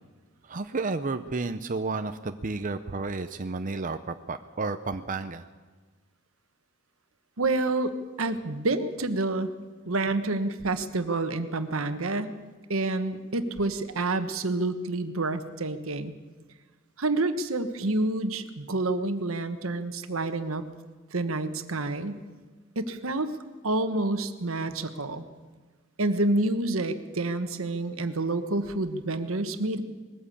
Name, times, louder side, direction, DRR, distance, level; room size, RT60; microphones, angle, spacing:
voice 1, 0.4-5.5, right 3 dB, 40° right, 8 dB, 0.7 m, -32 dB
voice 2, 7.4-9.5 9.9-12.3 12.7-16.1 17.0-20.6 21.1-22.2 22.7-23.3 23.6-25.3 26.0-29.8, right 2 dB, 80° right, 10 dB, 1.4 m, -28 dB
20.5 x 14.5 x 8.6 m, 1.3 s
head